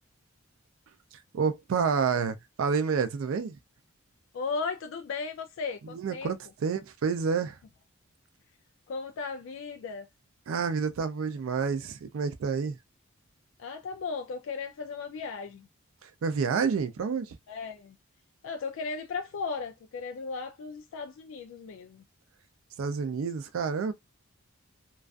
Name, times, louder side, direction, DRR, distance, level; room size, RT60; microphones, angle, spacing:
voice 1, 1.3-3.6 5.8-7.6 10.5-12.8 16.0-17.4 22.8-23.9, right 5 dB, 70° right, 0.4 m, -29 dB
voice 2, 4.3-6.3 8.9-10.1 13.6-15.7 17.5-18.0 18.4-22.0, left 4 dB, 65° left, 0.3 m, -36 dB
2.4 x 2.3 x 2.2 m
head